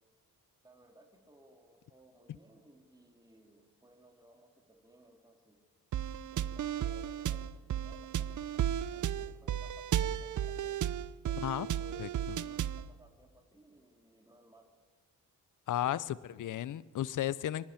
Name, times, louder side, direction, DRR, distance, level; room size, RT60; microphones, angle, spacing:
voice 1, 0.6-5.6 6.3-10.8 11.2-14.7, right 1 dB, 10° right, 2 dB, 3.4 m, -60 dB
sound 1, 5.9-12.9, right 10 dB, 55° right, 0.7 m, -34 dB
voice 2, 15.7-17.7, left 12 dB, 55° left, 19 dB, 0.7 m, -34 dB
25.5 x 12.0 x 8.9 m, 1.4 s
cardioid pair, 75°, 37 cm